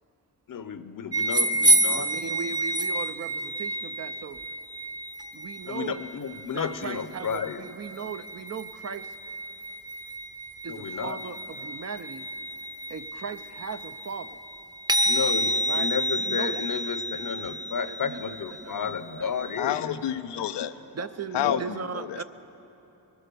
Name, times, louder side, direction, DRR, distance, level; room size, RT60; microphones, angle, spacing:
voice 1, 0.5-2.1 5.6-7.6 10.7-11.2 15.0-20.0 21.4-21.6, left 6 dB, 55° left, 12 dB, 0.8 m, -32 dB
sound 1, 1.1-19.6, right 1 dB, 10° right, 0.8 m, -29 dB
voice 2, 1.4-4.4 5.3-6.0 6.5-9.1 10.6-12.3 12.9-14.4 15.7-15.9 16.2-16.7 17.4-19.5 20.9-22.2, right 6 dB, 40° right, 11 dB, 0.6 m, -38 dB
voice 3, 19.6-20.8 21.3-22.2, left 10 dB, 90° left, 10 dB, 0.6 m, -29 dB
21.0 x 9.6 x 6.8 m, 3.0 s
cardioid pair, 55°, 40 cm